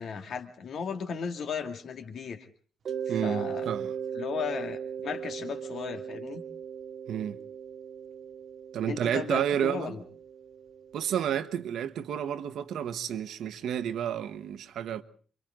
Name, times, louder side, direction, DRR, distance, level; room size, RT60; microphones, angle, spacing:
voice 1, 0.0-2.5 3.1-3.7 4.1-6.4 8.9-10.0, left 6 dB, 55° left, 2.2 m, -36 dB
Mallet percussion, 2.9-11.5, right 7 dB, 45° right, 2.2 m, -38 dB
voice 2, 3.1-3.9 7.1-7.4 8.7-10.0 10.9-15.0, right 9 dB, 80° right, 1.2 m, -31 dB
28.0 x 24.5 x 3.8 m
wide cardioid pair, 175°, 0 cm